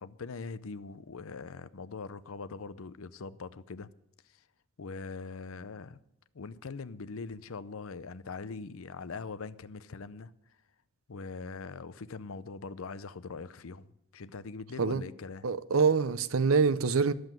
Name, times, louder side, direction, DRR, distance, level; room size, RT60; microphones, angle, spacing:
voice 1, 0.0-3.9 4.2-4.4 4.8-6.0 6.3-10.3 11.1-13.9 14.1-15.5, left 4 dB, 80° left, 0.6 m, -42 dB
voice 2, 15.4-17.1, right 5 dB, 85° right, 0.7 m, -25 dB
11.0 x 7.9 x 9.0 m
head